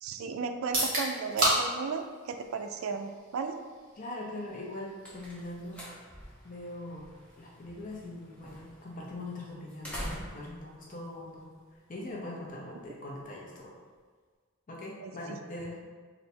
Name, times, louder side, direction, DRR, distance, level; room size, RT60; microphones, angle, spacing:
voice 1, 0.0-3.5 15.0-15.1, right 5 dB, 75° right, 5 dB, 0.3 m, -34 dB
sound 1, 0.6-14.4, right 1 dB, 45° right, 1.5 m, -38 dB
voice 2, 4.0-5.8 6.4-11.5 11.9-13.7 14.7-15.8, left 1 dB, 40° left, -3 dB, 0.6 m, -41 dB
sound 2, 4.5-12.0, equal, 5° left, 0.7 m, -46 dB
3.3 x 2.7 x 4.3 m, 1.5 s
head